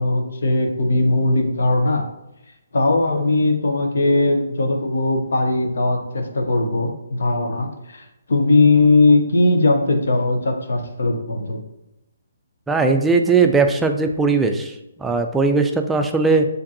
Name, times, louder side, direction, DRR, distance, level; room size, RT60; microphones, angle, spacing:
voice 1, 0.0-2.0 2.7-11.6, left 2 dB, 70° left, 5 dB, 0.8 m, -19 dB
voice 2, 12.7-16.5, right 4 dB, 5° right, 5 dB, 0.4 m, -18 dB
7.0 x 2.6 x 2.7 m, 0.93 s
figure-of-eight pair, 140°, 0 cm